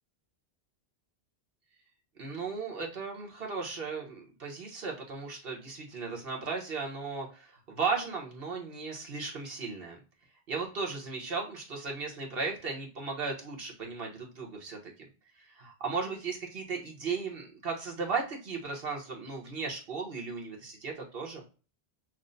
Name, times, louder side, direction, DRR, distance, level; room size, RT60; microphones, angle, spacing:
voice 1, 2.2-10.0 10.5-14.8 15.4-21.4, right 4 dB, 65° right, 0 dB, 1.3 m, -36 dB
5.8 x 2.1 x 2.5 m, 0.35 s
omnidirectional pair, 1.1 m